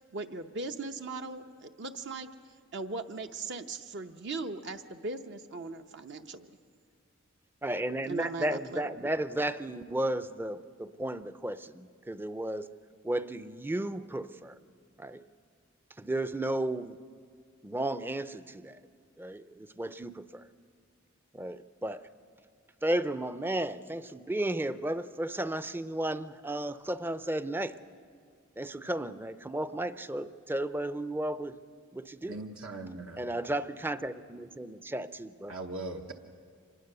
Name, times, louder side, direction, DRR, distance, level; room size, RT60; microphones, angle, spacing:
voice 1, 0.1-2.3 2.7-6.5 8.0-9.1, right 3 dB, 55° right, 6 dB, 0.8 m, -39 dB
voice 2, 7.6-12.7 13.0-14.6 15.0-15.3 16.0-17.0 17.6-18.8 19.2-20.5 21.3-22.0 22.8-27.8 28.6-31.6 31.9-32.4 33.2-35.5, right 1 dB, 10° right, 13 dB, 0.5 m, -34 dB
voice 3, 32.3-33.3 35.5-36.1, right 2 dB, 75° right, 3 dB, 1.0 m, -40 dB
25.5 x 20.0 x 6.7 m, 2.1 s
head